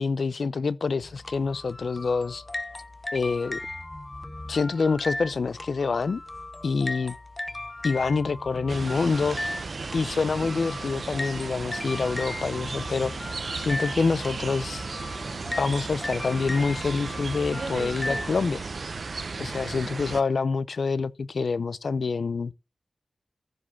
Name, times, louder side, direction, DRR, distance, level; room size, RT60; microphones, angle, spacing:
voice 1, 0.0-2.4 3.1-3.6 4.5-6.2 6.6-7.2 7.8-9.4 9.9-14.8 15.6-18.6 19.4-22.5, left 4 dB, 75° left, 0.6 m, -26 dB
sound 1, 1.0-18.3, left 1 dB, 25° left, 0.7 m, -37 dB
sound 2, 8.7-20.2, right 4 dB, 65° right, 0.9 m, -35 dB
14.0 x 5.0 x 5.9 m
wide cardioid pair, 105°, 0 cm